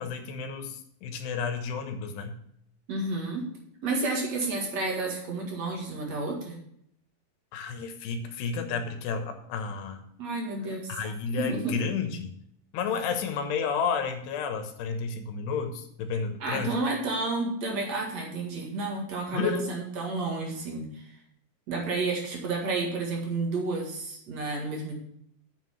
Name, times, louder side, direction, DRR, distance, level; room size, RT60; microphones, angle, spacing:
voice 1, 0.0-2.4 7.5-10.0 10.9-12.3 12.7-16.7 19.3-19.6, left 5 dB, 90° left, 6 dB, 3.3 m, -31 dB
voice 2, 2.9-3.4 3.8-6.6 10.2-11.1 11.4-11.8 16.4-21.2 21.7-25.0, right 3 dB, 50° right, 0 dB, 2.5 m, -31 dB
8.0 x 7.0 x 7.0 m, 0.71 s
omnidirectional pair, 4.7 m